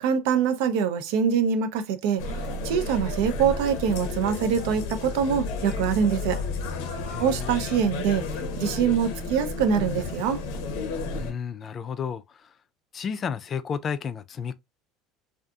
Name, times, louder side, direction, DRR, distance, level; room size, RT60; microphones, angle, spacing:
voice 1, 0.0-2.2 2.6-6.4 7.2-8.2 8.6-10.4, right 7 dB, 80° right, 0.4 m, -24 dB
sound 1, 2.2-11.3, left 3 dB, 85° left, 0.6 m, -32 dB
voice 2, 7.1-7.5 11.2-12.5 12.9-14.5, left 6 dB, 35° left, 0.3 m, -32 dB
2.6 x 2.4 x 2.3 m
supercardioid pair, 120°, 0 cm